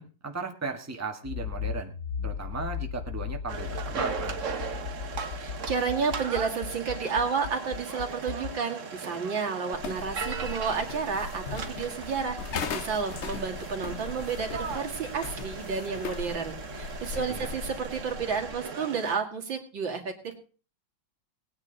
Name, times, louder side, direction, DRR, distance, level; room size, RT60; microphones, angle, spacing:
voice 1, 0.0-1.9 2.2-4.4 17.3-17.5, right 3 dB, 10° right, 4 dB, 1.6 m, -36 dB
Accelerating revving vroom, 1.2-8.5, left 8 dB, 65° left, 1.6 m, -36 dB
sound 1, 3.5-19.2, right 5 dB, 45° right, 1.4 m, -38 dB
voice 2, 5.3-12.4 12.7-20.4, right 5 dB, 80° right, 2 dB, 3.0 m, -31 dB
sound 2, 9.7-18.7, left 5 dB, 45° left, 1.0 m, -38 dB
20.0 x 9.7 x 4.0 m, 0.37 s
omnidirectional pair, 2.1 m